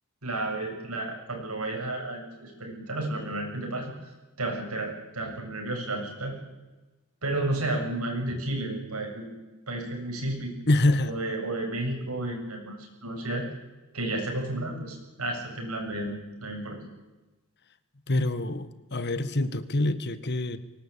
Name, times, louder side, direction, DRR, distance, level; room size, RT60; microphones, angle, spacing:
voice 1, 0.2-4.1 4.4-6.4 7.2-9.3 9.7-10.5 11.0-13.5 13.9-16.8, right 2 dB, 80° right, 2 dB, 8.0 m, -32 dB
voice 2, 10.7-11.1 18.1-20.6, left 2 dB, 50° left, 13 dB, 1.4 m, -25 dB
24.0 x 19.5 x 8.7 m, 1.1 s
head